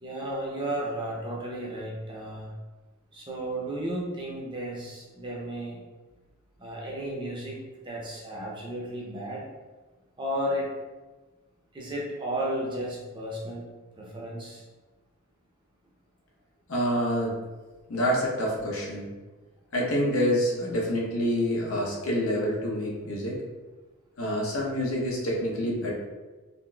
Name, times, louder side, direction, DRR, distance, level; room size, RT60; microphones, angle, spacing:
voice 1, 0.0-2.5 3.1-5.8 6.6-7.6 7.8-9.4 10.2-10.7 11.7-13.6 14.0-14.6, right 1 dB, 20° right, -3 dB, 0.5 m, -33 dB
voice 2, 16.7-17.4 17.9-19.1 19.7-23.4 24.2-25.9, equal, 75° left, -3 dB, 0.8 m, -27 dB
3.8 x 2.5 x 2.3 m, 1.2 s
head